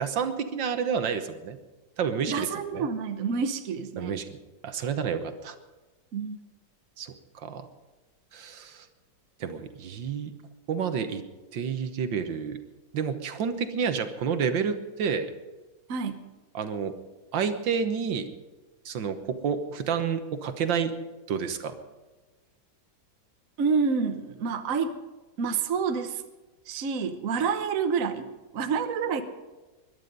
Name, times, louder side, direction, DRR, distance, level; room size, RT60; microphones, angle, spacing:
voice 1, 0.0-1.6 2.0-2.9 4.0-4.3 4.6-5.6 7.0-7.7 8.3-8.9 9.4-10.3 10.7-11.2 11.5-12.6 12.9-15.3 16.5-16.9 17.3-18.3 18.9-20.9 21.3-21.7, right 6 dB, 70° right, 8 dB, 1.8 m, -29 dB
voice 2, 2.3-4.2 6.1-6.4 15.9-16.2 23.6-24.9 25.4-26.2 26.7-29.2, right 5 dB, 50° right, 7 dB, 1.3 m, -28 dB
21.5 x 11.5 x 5.3 m, 1.2 s
omnidirectional pair, 2.1 m